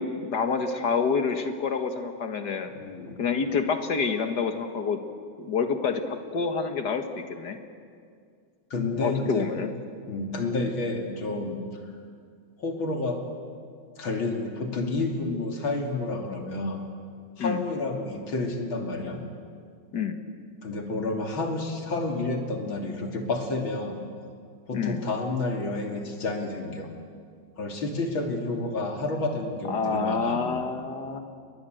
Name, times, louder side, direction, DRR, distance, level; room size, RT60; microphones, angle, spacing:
voice 1, 0.0-2.7 3.2-5.0 5.4-7.6 9.0-9.7 17.4-17.6 19.9-20.2 24.7-25.1 29.7-31.2, left 5 dB, 55° left, 6 dB, 2.2 m, -28 dB
voice 2, 2.7-3.2 8.7-9.5 10.1-11.6 12.6-13.2 14.0-16.8 17.4-19.2 20.6-24.0 24.7-26.9 27.6-30.4, left 2 dB, 70° left, 2 dB, 3.7 m, -30 dB
30.0 x 21.5 x 8.0 m, 2.2 s
omnidirectional pair, 2.2 m